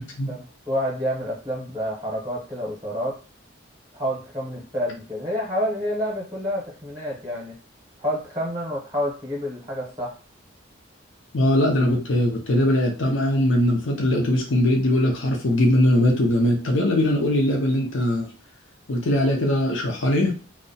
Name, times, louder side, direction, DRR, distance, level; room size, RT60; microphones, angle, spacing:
voice 1, 0.3-3.2 3.9-7.6 8.0-10.2, equal, 15° right, -3 dB, 0.7 m, -28 dB
voice 2, 11.3-18.3 18.9-20.3, left 1 dB, 75° left, 0 dB, 0.6 m, -20 dB
2.6 x 2.1 x 2.6 m, 0.35 s
head